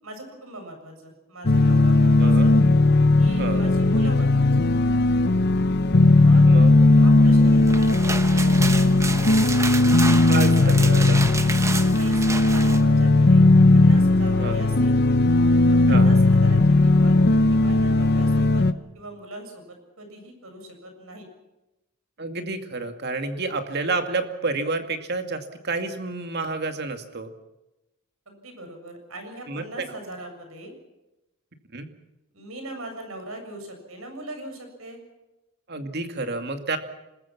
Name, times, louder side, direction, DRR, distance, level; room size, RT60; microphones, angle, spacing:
voice 1, 0.0-2.5 3.2-4.6 6.1-6.4 6.9-9.4 10.1-10.8 12.0-13.5 13.7-15.0 15.7-17.1 17.4-18.6 18.9-21.3 28.3-30.7 32.3-35.0, right 1 dB, 75° right, 5 dB, 7.2 m, -41 dB
sound 1, 1.4-18.7, left 2 dB, 50° left, 1.0 m, -17 dB
voice 2, 2.0-2.5 3.4-3.6 6.5-6.7 10.3-11.2 14.4-14.6 15.9-16.1 22.2-27.3 29.5-29.8 31.7-31.9 35.7-36.8, right 3 dB, 50° right, 7 dB, 2.3 m, -29 dB
sound 2, 7.5-12.8, right 3 dB, 15° right, 1.1 m, -30 dB
27.0 x 21.0 x 6.0 m, 0.98 s
head